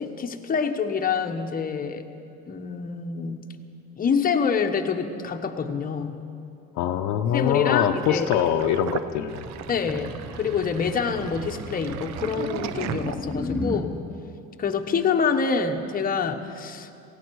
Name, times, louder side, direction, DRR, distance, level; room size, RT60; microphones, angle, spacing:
voice 1, 0.0-2.1 2.5-3.5 4.0-6.2 7.3-8.3 9.7-14.0 14.6-16.9, left 6 dB, 30° left, 5 dB, 1.1 m, -26 dB
voice 2, 6.8-9.5 13.4-13.7, left 9 dB, 65° left, 6 dB, 0.8 m, -24 dB
Sink (filling or washing), 8.0-13.6, right 9 dB, 60° right, 0.7 m, -36 dB
sound 1, 8.6-13.9, left 1 dB, 5° left, 1.2 m, -35 dB
18.0 x 16.0 x 4.7 m, 2.6 s
supercardioid pair, 105°, 31 cm